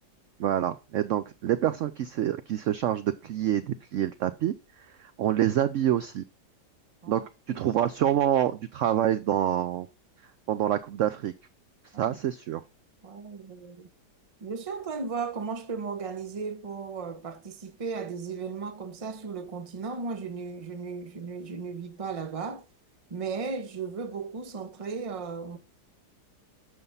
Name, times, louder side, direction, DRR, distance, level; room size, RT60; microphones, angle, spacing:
voice 1, 0.4-6.2 7.1-7.2 7.5-9.9 10.5-11.3 12.0-12.6, right 11 dB, 70° right, 0.7 m, -27 dB
voice 2, 7.0-7.6 11.9-12.2 13.0-13.9 14.4-22.6 23.1-25.6, right 5 dB, 30° right, 0.6 m, -36 dB
6.8 x 5.7 x 5.4 m
omnidirectional pair, 1.8 m